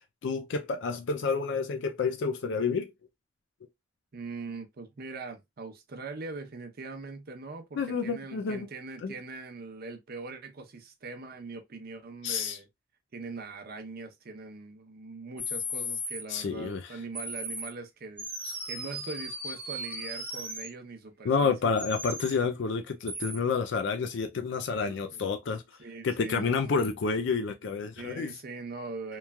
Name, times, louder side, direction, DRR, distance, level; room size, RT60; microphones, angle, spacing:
voice 1, 0.2-2.9 7.8-8.7 9.0-9.1 12.2-12.6 16.3-17.0 21.2-25.6 26.0-28.3, left 5 dB, 70° left, 0.4 m, -29 dB
voice 2, 4.1-12.7 13.1-18.3 18.6-21.7 24.8-25.2 25.8-26.8 28.0-29.2, right 3 dB, 55° right, 0.7 m, -42 dB
sound 1, 15.4-16.2 17.1-17.7 18.2-20.7 21.8-22.3 23.1-23.4, equal, 10° right, 0.7 m, -36 dB
3.0 x 2.2 x 2.2 m
head